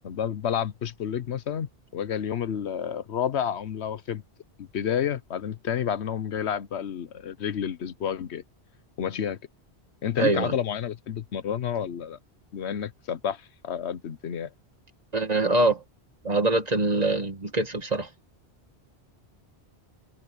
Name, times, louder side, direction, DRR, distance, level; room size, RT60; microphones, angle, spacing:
voice 1, 0.0-4.2 4.6-8.4 9.0-9.4 10.0-12.2 12.5-14.5, left 8 dB, 80° left, 1.1 m, -30 dB
voice 2, 10.2-10.5 15.1-15.8 16.2-18.1, right 2 dB, 40° right, 1.9 m, -24 dB
omnidirectional pair, 1.1 m